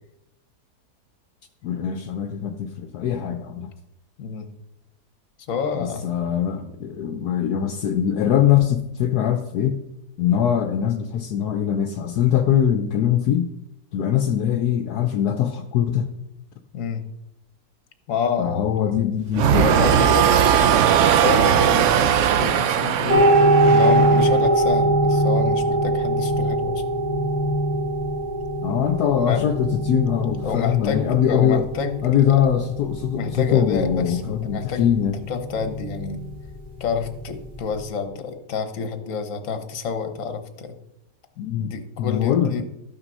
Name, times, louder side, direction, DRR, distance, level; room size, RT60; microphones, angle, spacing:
voice 1, 1.6-3.7 5.7-9.8 10.2-13.5 13.9-16.1 18.4-19.7 28.6-31.6 32.0-35.1 41.4-41.7 42.0-42.6, left 9 dB, 75° left, 6 dB, 1.2 m, -22 dB
voice 2, 5.5-6.1 16.7-17.0 18.1-18.7 19.5-20.8 21.2-23.2 23.7-26.8 29.3-29.5 30.4-32.3 33.1-34.9 35.3-36.2 36.8-40.7 41.6-42.6, left 6 dB, 55° left, 7 dB, 1.4 m, -28 dB
sound 1, 19.3-24.5, right 9 dB, 65° right, 0.8 m, -19 dB
sound 2, 23.1-37.8, right 1 dB, 25° right, 2.4 m, -22 dB
13.0 x 5.9 x 5.5 m, 0.87 s
omnidirectional pair, 1.7 m